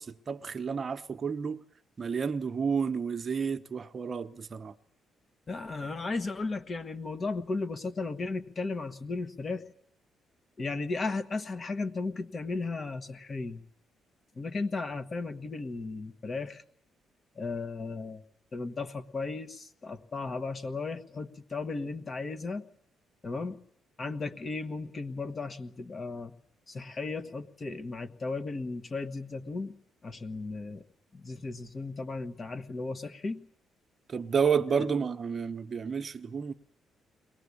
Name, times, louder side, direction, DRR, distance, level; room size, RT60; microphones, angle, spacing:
voice 1, 0.0-1.6 2.0-4.7 34.1-36.5, right 6 dB, 40° right, 0.9 m, -30 dB
voice 2, 5.5-9.6 10.6-13.6 14.3-16.6 17.3-18.2 18.5-22.6 23.2-23.6 24.0-26.3 26.7-29.7 30.0-30.8 31.1-33.4 34.7-34.9, left 3 dB, 35° left, 1.5 m, -35 dB
22.5 x 18.5 x 8.5 m
cardioid pair, 90°, 0 cm